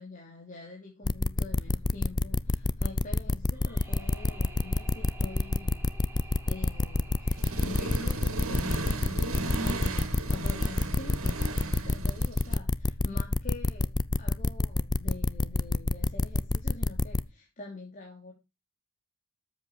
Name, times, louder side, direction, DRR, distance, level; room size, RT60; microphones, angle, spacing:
voice 1, 0.0-5.8 6.1-13.9 14.2-18.3, left 3 dB, 40° left, -1 dB, 3.3 m, -45 dB
sound 1, 1.0-17.2, left 2 dB, 20° left, 0.5 m, -27 dB
sound 2, 3.5-10.5, right 2 dB, 10° right, 3.7 m, -52 dB
Accelerating revving vroom, 7.3-12.6, right 2 dB, 80° right, 2.4 m, -35 dB
13.0 x 8.2 x 4.6 m, 0.26 s
head